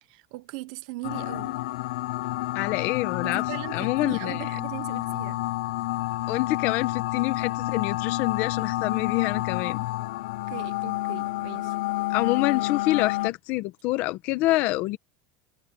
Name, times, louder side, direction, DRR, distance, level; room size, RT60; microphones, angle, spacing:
voice 1, 0.0-1.6 3.2-5.4 10.5-11.7, right 21 dB, 60° right, 1.1 m, -39 dB
sound 1, 1.0-13.3, left 18 dB, 80° left, 0.7 m, -29 dB
voice 2, 2.5-4.5 6.3-9.9 12.1-15.0, left 18 dB, 45° left, 1.2 m, -27 dB
supercardioid pair, 175°, 4 cm